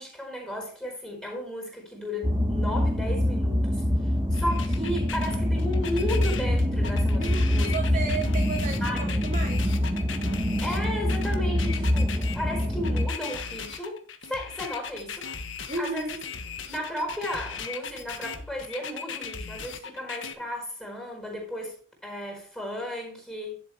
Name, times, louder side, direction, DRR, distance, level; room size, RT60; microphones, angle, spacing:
voice 1, 0.0-7.8 8.8-9.4 10.6-15.3 15.8-16.2 16.6-23.6, left 1 dB, 5° left, 4.8 m, -34 dB
sound 1, 2.2-13.1, left 1 dB, 20° right, 1.5 m, -25 dB
sound 2, 4.3-20.3, left 6 dB, 80° left, 1.4 m, -38 dB
voice 2, 7.2-9.6 15.7-16.2, right 4 dB, 45° right, 1.6 m, -33 dB
11.5 x 7.3 x 3.5 m
head